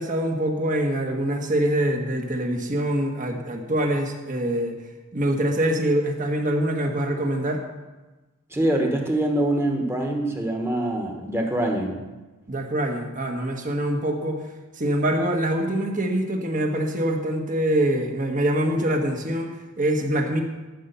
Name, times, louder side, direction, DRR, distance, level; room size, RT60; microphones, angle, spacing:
voice 1, 0.0-4.8 5.1-7.6 12.5-14.4 14.8-20.4, right 1 dB, 35° right, 3 dB, 1.3 m, -24 dB
voice 2, 8.5-12.0, right 1 dB, 10° right, 2 dB, 1.3 m, -24 dB
13.0 x 5.5 x 6.8 m, 1.2 s
head